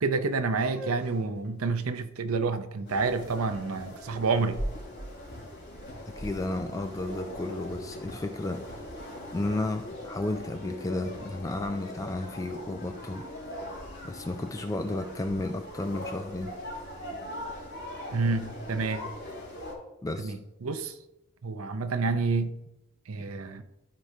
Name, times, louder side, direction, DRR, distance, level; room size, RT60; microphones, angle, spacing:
voice 1, 0.0-4.6 18.1-19.0 20.2-20.9 21.4-22.6 23.1-23.6, right 4 dB, 70° right, 0.6 m, -29 dB
sound 1, 0.6-6.5, left 1 dB, 5° right, 2.7 m, -50 dB
sound 2, 2.9-19.8, left 1 dB, 55° left, 3.1 m, -40 dB
voice 2, 6.1-8.9 9.3-13.3 14.0-16.5 20.0-20.4, left 2 dB, 15° left, 0.3 m, -33 dB
13.5 x 4.8 x 2.7 m
head